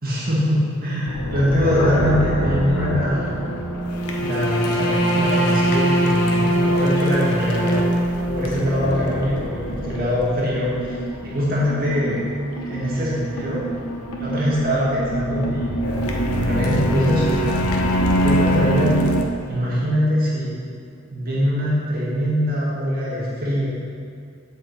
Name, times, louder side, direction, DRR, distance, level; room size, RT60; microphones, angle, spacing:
voice 1, 0.0-3.4 4.2-7.8 8.3-11.0 11.2-12.3 12.7-13.6 14.2-15.7 16.2-17.5 18.2-18.9 19.5-20.6 21.1-23.7, equal, 40° right, -8 dB, 2.1 m, -22 dB
sound 1, 1.1-19.2, right 1 dB, 85° left, 0.9 m, -23 dB
7.9 x 7.6 x 4.2 m, 2.3 s
head